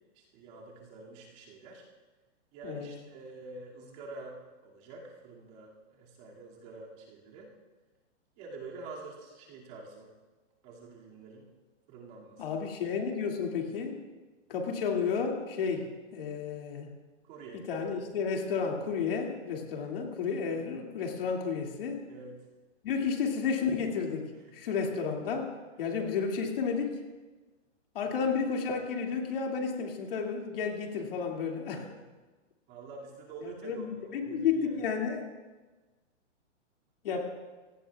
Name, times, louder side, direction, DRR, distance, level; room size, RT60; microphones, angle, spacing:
voice 1, 0.1-1.8 2.5-7.5 8.4-10.1 10.6-11.5 11.9-12.6 17.2-17.6 17.9-18.0 20.6-20.7 22.1-22.4 23.0-23.1 24.5-24.8 28.0-28.1 31.7-32.0 32.7-34.8 37.1-37.2, right 3 dB, 25° right, -3 dB, 2.4 m, -47 dB
voice 2, 12.4-14.0 14.5-16.9 17.7-22.0 22.8-24.3 24.5-25.5 25.8-27.0 27.9-31.8 33.4-35.2 37.0-37.2, left 5 dB, 45° left, 1 dB, 2.5 m, -32 dB
25.5 x 18.0 x 2.4 m, 1.3 s
hypercardioid pair, 170°, 37 cm